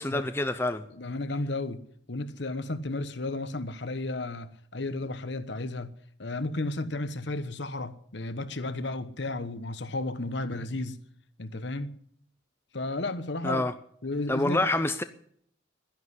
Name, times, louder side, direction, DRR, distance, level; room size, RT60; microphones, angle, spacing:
voice 1, 0.0-0.8 13.4-13.7 14.3-15.0, left 2 dB, 10° left, 0.6 m, -27 dB
voice 2, 0.9-5.9 6.2-11.0 11.4-12.0 12.7-13.6 14.0-14.7, left 2 dB, 60° left, 1.2 m, -33 dB
12.0 x 11.0 x 9.9 m
head